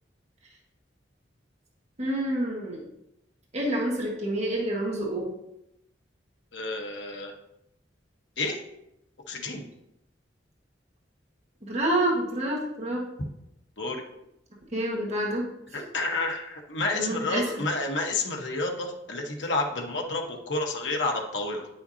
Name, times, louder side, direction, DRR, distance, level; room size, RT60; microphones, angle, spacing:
voice 1, 2.0-2.8 3.5-5.3 11.7-13.1 14.7-15.5 15.7-15.8 16.9-17.4, right 1 dB, 40° right, -3 dB, 1.5 m, -28 dB
voice 2, 6.5-7.3 8.4-8.6 9.3-9.6 13.8-14.0 15.7-21.7, left 2 dB, 80° left, 2 dB, 1.2 m, -30 dB
9.7 x 5.7 x 2.8 m, 0.85 s
head